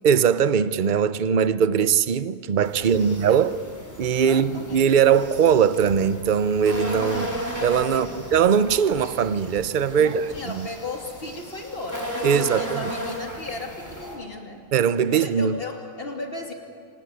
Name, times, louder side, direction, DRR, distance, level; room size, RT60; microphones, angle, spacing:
voice 1, 0.0-3.6 4.0-7.3 7.6-10.7 12.2-12.9 14.7-15.6, right 7 dB, 45° right, 0.7 m, -21 dB
sound 1, 2.6-14.1, equal, 10° left, 5.1 m, -35 dB
voice 2, 2.8-3.4 4.1-4.9 7.1-7.3 7.9-8.2 10.0-14.6 15.1-16.5, left 2 dB, 35° left, 2.9 m, -36 dB
26.5 x 19.0 x 9.4 m
omnidirectional pair, 1.7 m